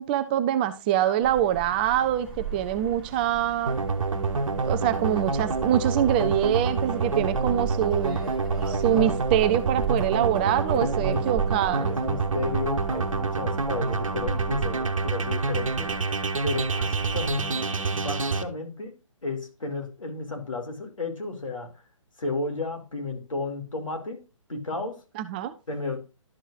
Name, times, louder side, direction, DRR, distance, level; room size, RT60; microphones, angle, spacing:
voice 1, 0.0-3.8 4.6-8.2 8.7-11.9 25.2-25.5, right 11 dB, 20° right, 11 dB, 0.4 m, -24 dB
sound 1, 1.2-17.4, right 5 dB, ahead, 3.8 m, -38 dB
sound 2, 3.7-18.4, right 4 dB, 75° right, 1.1 m, -27 dB
voice 2, 10.7-11.2 11.8-15.9 16.4-18.9 19.2-21.7 22.2-24.2 24.5-25.0 25.7-26.0, left 3 dB, 80° left, 4 dB, 2.5 m, -33 dB
11.5 x 6.3 x 2.5 m, 0.29 s
figure-of-eight pair, 140°, 17 cm